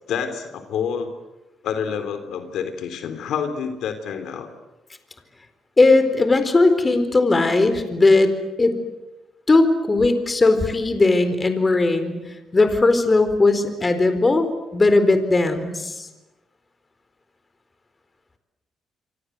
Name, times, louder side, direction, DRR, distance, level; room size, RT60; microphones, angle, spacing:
voice 1, 0.1-1.1 1.6-4.5, left 7 dB, 80° left, 8 dB, 3.3 m, -28 dB
voice 2, 5.8-8.3 8.6-8.8 9.5-12.1 12.5-14.5 14.7-16.1, left 3 dB, 25° left, 9 dB, 4.2 m, -18 dB
27.0 x 25.5 x 7.9 m, 1.1 s
cardioid pair, 90°, 0 cm